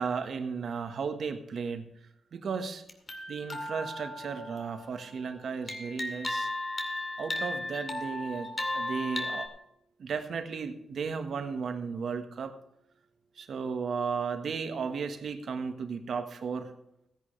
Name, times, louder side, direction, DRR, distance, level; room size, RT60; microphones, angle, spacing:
voice 1, 0.0-1.9 2.3-2.8 3.3-6.5 7.2-9.5 10.0-12.6 13.4-16.7, right 5 dB, 65° right, 7 dB, 1.5 m, -34 dB
sound 1, 2.9-5.1 5.7-9.5, left 1 dB, 30° left, 2.3 m, -35 dB
16.5 x 10.0 x 3.3 m, 0.81 s
cardioid pair, 95°, 0 cm